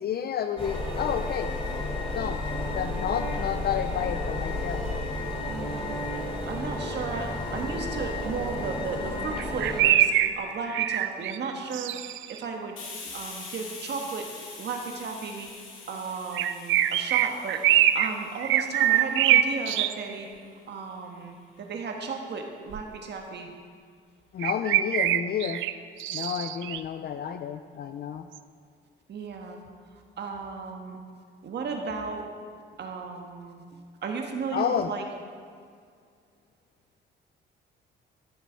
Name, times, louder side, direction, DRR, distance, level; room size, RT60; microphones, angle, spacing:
voice 1, 0.0-1.5 2.1-2.4 2.7-4.8 24.3-25.6 26.1-28.3 34.5-34.9, left 8 dB, 50° left, 9 dB, 0.5 m, -30 dB
sound 1, 0.6-9.8, left 2 dB, 30° left, 2.6 m, -32 dB
voice 2, 5.5-6.0 6.5-12.0 12.3-12.8 13.0-14.3 14.6-15.5 15.9-17.6 17.9-20.3 20.6-23.5 29.1-29.6 29.9-31.0 31.4-32.3 32.7-35.0, right 5 dB, 60° right, 2 dB, 1.6 m, -35 dB
sound 2, 9.4-12.4 16.4-18.1 18.4-19.9 22.7-22.8 24.4-26.8 28.4-28.5, right 12 dB, 75° right, 0.5 m, -23 dB
Hiss, 12.8-20.2, left 4 dB, 80° left, 2.5 m, -44 dB
13.5 x 6.8 x 4.7 m, 2.1 s
cardioid pair, 90°, 20 cm